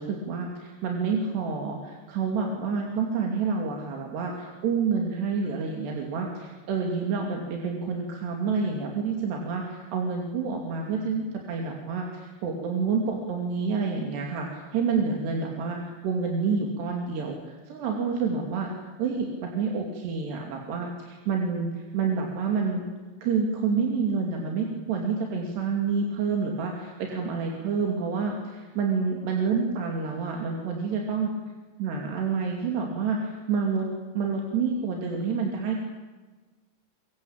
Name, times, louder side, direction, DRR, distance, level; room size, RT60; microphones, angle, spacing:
voice 1, 0.0-18.7 19.0-22.9 23.2-31.3 31.8-33.9 34.1-35.8, right 5 dB, 85° right, 1 dB, 4.9 m, -28 dB
24.5 x 23.5 x 8.8 m, 1.3 s
omnidirectional pair, 4.7 m